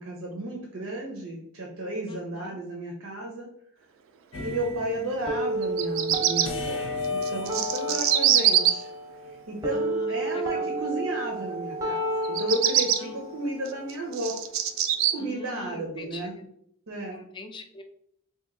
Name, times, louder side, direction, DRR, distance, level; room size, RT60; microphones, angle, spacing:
voice 1, 0.0-3.5 4.4-8.9 9.2-14.4 15.1-16.3 16.9-17.2, right 1 dB, 85° right, -1 dB, 0.7 m, -33 dB
voice 2, 2.1-2.6 7.9-8.0 9.7-10.2 10.5-10.7 13.0-13.2 15.2-16.5 17.1-17.8, left 3 dB, 20° left, 6 dB, 0.3 m, -43 dB
sound 1, 4.3-5.2 6.4-9.3, left 4 dB, 75° left, 0.6 m, -35 dB
sound 2, 5.3-15.3, right 1 dB, 15° right, 0.6 m, -33 dB
Bird vocalization bird call bird song, 5.6-6.5 7.2-8.7 12.2-13.0 13.7-15.1, right 11 dB, 65° right, 0.3 m, -23 dB
2.9 x 2.6 x 3.6 m, 0.72 s
head